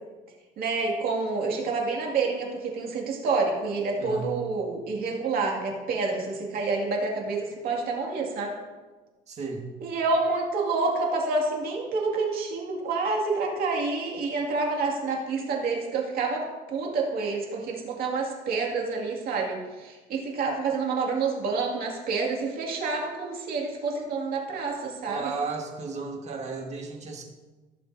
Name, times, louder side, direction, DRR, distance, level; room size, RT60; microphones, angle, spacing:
voice 1, 0.6-8.5 9.8-25.3, right 3 dB, 60° right, -1 dB, 2.4 m, -28 dB
voice 2, 4.0-4.3 9.3-9.7 25.1-27.2, right 4 dB, 40° right, 1 dB, 1.7 m, -34 dB
16.0 x 7.0 x 2.8 m, 1.3 s
cardioid pair, 125°, 17 cm